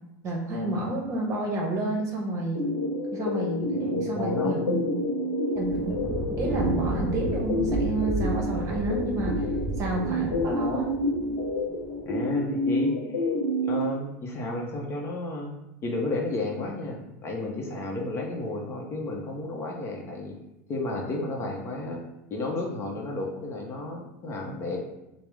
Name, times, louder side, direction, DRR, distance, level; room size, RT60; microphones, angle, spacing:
voice 1, 0.2-2.7 3.1-4.8 5.5-6.0 6.4-9.4 9.8-10.9, right 2 dB, 35° right, 0 dB, 1.0 m, -30 dB
sound 1, 2.5-13.8, left 1 dB, 80° left, 0.9 m, -29 dB
voice 2, 3.9-4.6 12.0-13.3 13.6-15.5 15.8-20.4 20.7-22.0 22.3-24.8, left 2 dB, 30° left, 0 dB, 0.7 m, -32 dB
Thunder, 5.5-12.2, right 2 dB, 15° right, 0.3 m, -33 dB
4.6 x 2.1 x 3.4 m, 0.91 s
supercardioid pair, 125°, 8 cm